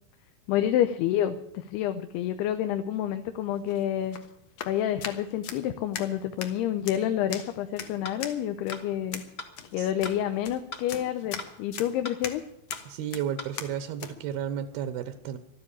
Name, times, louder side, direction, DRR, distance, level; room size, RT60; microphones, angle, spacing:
voice 1, 0.5-4.2 4.7-9.2 9.7-12.4, left 11 dB, 85° left, 9 dB, 2.8 m, -28 dB
sound 1, 3.5-14.2, left 8 dB, 65° left, 1.7 m, -41 dB
sound 2, 8.0-8.2 8.7-8.8 9.4-9.5 10.0-10.2 10.7-10.8 11.4-11.5 12.0-12.2 12.7-12.8 13.4-13.5, left 3 dB, 40° left, 1.6 m, -38 dB
voice 2, 12.9-15.4, right 9 dB, 80° right, 10 dB, 2.7 m, -33 dB
12.5 x 10.0 x 9.8 m, 0.79 s
omnidirectional pair, 4.5 m